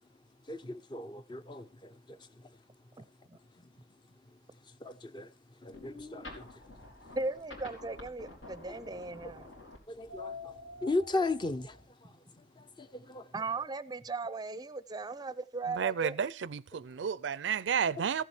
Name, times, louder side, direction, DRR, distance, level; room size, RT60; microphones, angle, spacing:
voice 1, 0.5-2.2 4.8-5.3 5.6-6.5 9.9-10.5 10.8-11.8 12.0-12.1 12.6-13.3, left 2 dB, 25° left, 0.5 m, -36 dB
voice 2, 3.0-3.4 7.2-9.5 13.3-16.2, right 3 dB, 20° right, 0.5 m, -37 dB
sound 1, 5.6-11.8, left 3 dB, 90° left, 3.5 m, -48 dB
voice 3, 15.8-18.2, right 7 dB, 75° right, 0.4 m, -31 dB
15.0 x 7.4 x 4.4 m
head